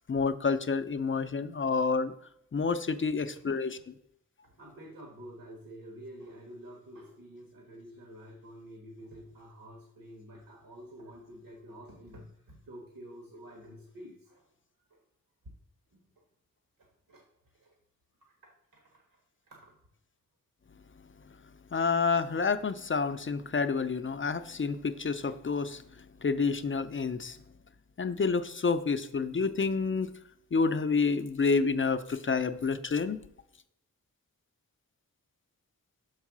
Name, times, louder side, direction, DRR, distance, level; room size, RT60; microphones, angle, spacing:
voice 1, 0.1-2.1 2.5-3.9 21.7-25.8 26.2-27.4 28.0-30.1 30.5-33.2, left 4 dB, 35° left, 10 dB, 0.5 m, -29 dB
voice 2, 3.0-3.4 3.7-3.9 4.4-14.5 14.9-15.0 15.9-16.1 16.8-17.2 17.5-17.7 18.2-19.2 19.5-19.8, equal, 75° right, 0 dB, 1.5 m, -49 dB
6.3 x 4.7 x 6.0 m, 0.76 s
wide cardioid pair, 110°, 34 cm